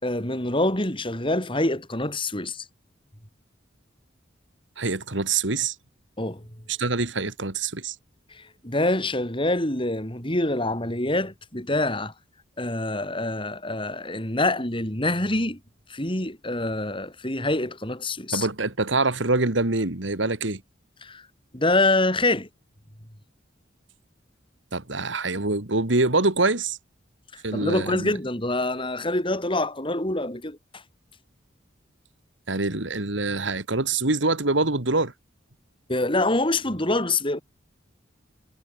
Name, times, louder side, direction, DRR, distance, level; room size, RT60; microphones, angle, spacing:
voice 1, 0.0-2.7 6.2-6.5 8.3-12.1 12.6-15.6 15.9-18.5 21.0-21.3 21.5-22.5 27.3-30.8 35.9-37.4, left 2 dB, 25° left, 5.6 m, -26 dB
voice 2, 4.8-5.7 6.7-8.0 18.3-20.6 24.7-26.8 27.4-28.1 32.5-35.1, right 3 dB, 75° right, 2.4 m, -25 dB
head